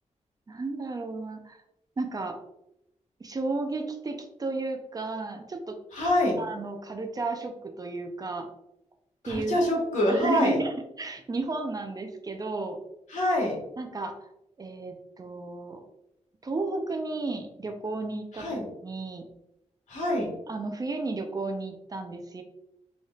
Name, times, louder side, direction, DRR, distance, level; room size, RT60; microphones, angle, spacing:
voice 1, 0.5-1.6 2.0-2.4 3.2-5.8 6.4-8.5 9.2-9.6 10.1-12.8 13.8-14.3 14.6-15.8 16.4-18.6 18.8-19.3 20.5-22.4, right 3 dB, 30° right, 5 dB, 0.4 m, -33 dB
voice 2, 5.9-6.4 9.2-10.6 13.1-13.5 18.4-18.7 19.9-20.3, left 1 dB, 85° left, -3 dB, 1.5 m, -25 dB
4.0 x 3.5 x 2.3 m, 0.83 s
wide cardioid pair, 145°, 12 cm